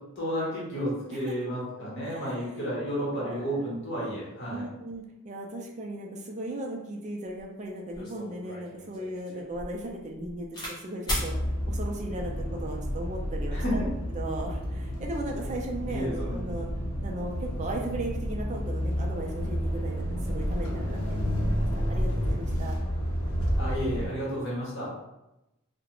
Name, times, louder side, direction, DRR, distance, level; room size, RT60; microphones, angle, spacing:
voice 1, 0.2-4.6 13.5-13.8 15.9-16.5 23.6-24.9, equal, 55° left, -6 dB, 1.0 m, -32 dB
voice 2, 2.0-2.5 3.2-3.6 4.5-13.8 14.1-16.7 17.0-21.6 21.9-22.7, right 1 dB, 35° right, 1 dB, 0.4 m, -37 dB
sound 1, 7.4-7.5 7.9-10.7 11.0-11.3 12.2-12.5, equal, 20° left, 0.7 m, -35 dB
sound 2, 11.1-24.1, equal, 85° left, 0.6 m, -30 dB
2.4 x 2.1 x 2.9 m, 0.94 s
head